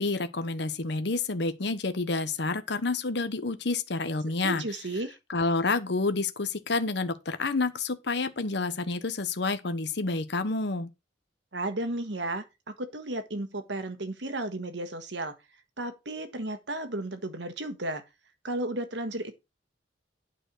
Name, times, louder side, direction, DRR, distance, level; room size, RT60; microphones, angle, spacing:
voice 1, 0.0-4.6 5.3-10.9, left 3 dB, 65° left, 1.0 m, -29 dB
voice 2, 4.4-5.2 11.5-12.4 12.8-15.3 15.8-18.0 18.4-19.4, right 2 dB, 70° right, 1.4 m, -33 dB
9.1 x 4.3 x 6.8 m
head